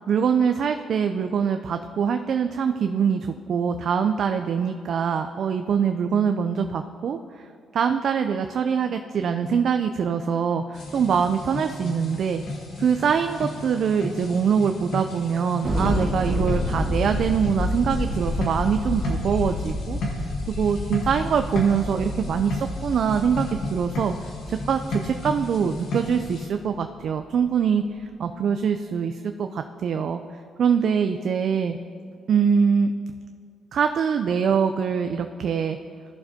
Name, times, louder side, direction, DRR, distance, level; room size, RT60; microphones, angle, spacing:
voice 1, 0.1-7.5 7.7-12.4 12.8-20.0 20.6-24.1 24.5-30.2 30.6-31.8 32.3-32.9 33.7-35.8, right 7 dB, 60° right, 7 dB, 0.4 m, -23 dB
sound 1, 10.7-26.5, left 1 dB, 65° left, 1.5 m, -34 dB
Thunder, 15.6-26.3, left 1 dB, 40° right, 1.8 m, -29 dB
15.0 x 6.8 x 2.8 m, 2.5 s
cardioid pair, 90°, 0 cm